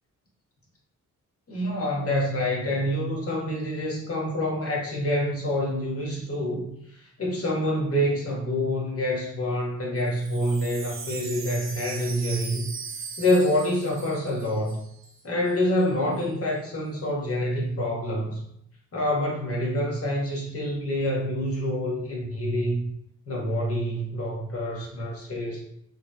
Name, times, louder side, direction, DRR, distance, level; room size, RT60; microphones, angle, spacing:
voice 1, 1.5-6.6 7.2-12.6 13.2-14.8 15.2-18.4 18.9-22.8 23.3-25.6, left 1 dB, 45° left, -3 dB, 1.2 m, -27 dB
Wind chime, 10.0-15.2 15.5-15.6 15.8-16.2, right 5 dB, 40° right, 0.6 m, -39 dB
3.1 x 2.8 x 2.2 m, 0.74 s
cardioid pair, 60°, 32 cm